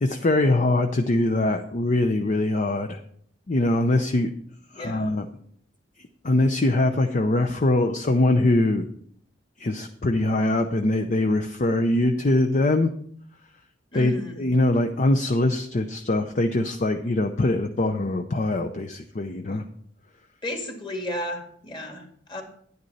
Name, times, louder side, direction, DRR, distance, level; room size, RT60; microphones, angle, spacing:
voice 1, 0.0-3.0 3.5-4.3 4.8-5.3 6.2-8.9 9.6-12.9 13.9-19.6, left 2 dB, 40° left, 6 dB, 0.6 m, -22 dB
voice 2, 4.7-5.1 13.9-14.5 20.4-22.4, left 1 dB, 25° left, 3 dB, 2.0 m, -33 dB
10.5 x 9.5 x 4.1 m, 0.63 s
head